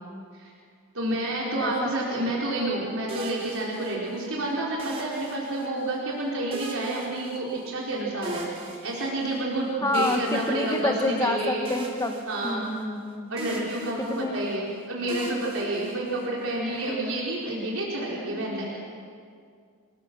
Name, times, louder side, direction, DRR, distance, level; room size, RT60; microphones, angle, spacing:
voice 1, 0.9-11.7 12.3-12.8 13.3-18.7, right 1 dB, 75° right, -4 dB, 4.6 m, -29 dB
voice 2, 1.6-1.9 9.8-13.3 14.1-14.4 16.7-16.9 18.2-18.6, left 2 dB, 15° left, 4 dB, 1.6 m, -28 dB
sound 1, 3.1-4.3 4.8-5.9 6.5-7.9 8.2-9.4 9.9-11.3 11.7-13.1 13.4-14.6 15.1-16.4, right 1 dB, 25° right, 3.4 m, -40 dB
28.5 x 21.0 x 6.3 m, 2.2 s
head